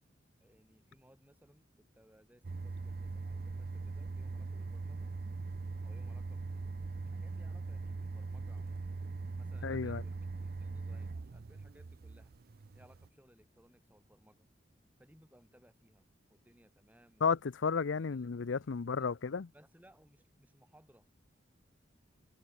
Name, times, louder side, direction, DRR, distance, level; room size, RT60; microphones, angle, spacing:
voice 1, 0.4-5.1 5.8-6.7 7.1-8.9 9.3-10.2 10.4-12.3 12.7-14.5 15.0-17.5 17.9-18.3 18.7-19.1 19.5-21.1, equal, 10° right, 7.4 m, -64 dB
sound 1, 2.4-13.1, right 3 dB, 55° right, 0.5 m, -41 dB
voice 2, 9.6-10.0 17.2-19.5, left 5 dB, 80° left, 0.6 m, -33 dB
head